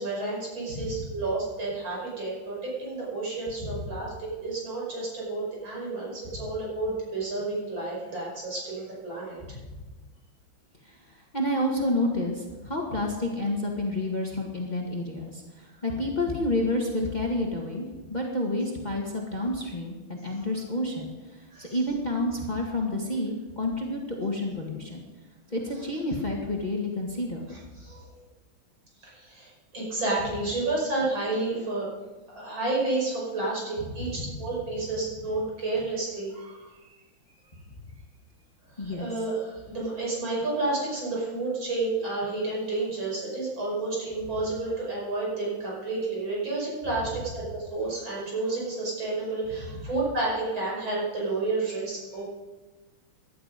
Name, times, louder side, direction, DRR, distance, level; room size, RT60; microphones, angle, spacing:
voice 1, 0.0-9.4 21.5-21.8 27.5-28.1 29.0-31.9 32.3-36.9 38.8-52.2, right 2 dB, 70° right, -4 dB, 6.4 m, -31 dB
voice 2, 0.7-1.0 3.6-3.9 9.5-9.6 10.8-25.0 25.5-27.5 34.0-34.4 38.8-39.1 49.6-49.8, left 1 dB, 20° left, -1 dB, 1.8 m, -30 dB
17.5 x 12.0 x 5.2 m, 1.2 s
omnidirectional pair, 2.3 m